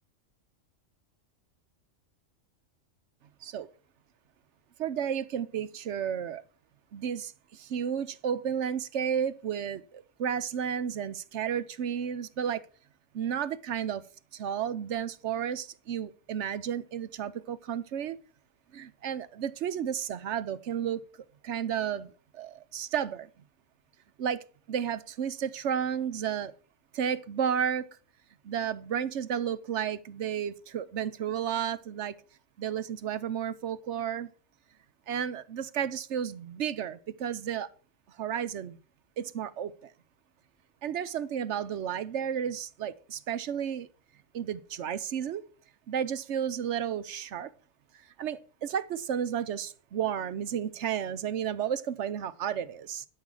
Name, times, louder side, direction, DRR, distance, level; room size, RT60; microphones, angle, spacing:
voice 1, 4.8-6.4 6.9-12.6 13.1-14.0 14.3-18.2 18.7-21.0 21.4-23.3 24.2-24.4 24.7-26.5 26.9-27.9 28.4-32.2 32.6-34.3 35.1-37.7 38.2-38.8 39.2-39.9 40.8-43.9 44.3-45.4 45.9-47.5 48.2-53.1, right 8 dB, 70° right, 1.0 m, -32 dB
12.0 x 5.7 x 6.1 m
omnidirectional pair, 1.3 m